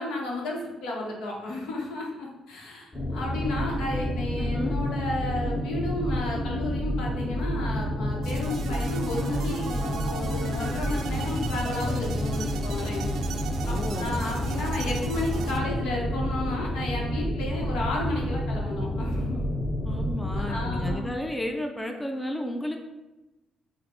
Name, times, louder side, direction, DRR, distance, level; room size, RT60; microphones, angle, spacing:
voice 1, 0.0-13.0 13.7-19.5 20.3-21.2, left 2 dB, 90° left, -2 dB, 0.8 m, -33 dB
sound 1, 2.9-20.9, equal, 30° left, 1.0 m, -29 dB
voice 2, 4.4-4.8 13.6-14.2 19.8-22.8, equal, 10° left, 3 dB, 0.4 m, -33 dB
sound 2, 8.2-15.6, right 5 dB, 75° right, 0.3 m, -39 dB
4.9 x 2.0 x 3.0 m, 1.1 s
cardioid pair, 90°, 0 cm